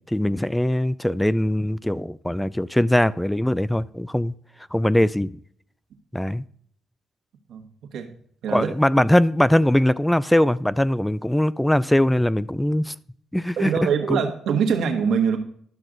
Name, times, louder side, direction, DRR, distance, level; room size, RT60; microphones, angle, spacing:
voice 1, 0.0-4.3 4.7-5.3 6.1-6.4 8.5-12.9 13.3-14.2, left 1 dB, 5° left, 18 dB, 0.4 m, -21 dB
voice 2, 13.6-15.4, right 6 dB, 75° right, 4 dB, 1.5 m, -23 dB
12.0 x 6.0 x 3.9 m, 0.62 s
cardioid pair, 90°, 0 cm